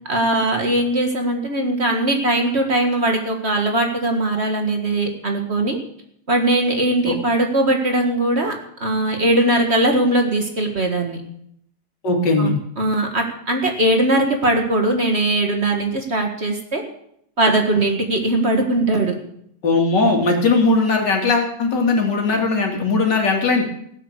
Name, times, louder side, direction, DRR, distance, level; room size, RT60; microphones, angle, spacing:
voice 1, 0.1-5.8 6.3-8.5 8.8-11.2 12.4-16.8 17.4-19.2, right 1 dB, 40° right, 3 dB, 2.0 m, -20 dB
voice 2, 12.0-12.5 19.6-23.6, left 3 dB, 85° left, 1 dB, 3.1 m, -18 dB
16.5 x 8.2 x 6.7 m, 0.71 s
omnidirectional pair, 1.8 m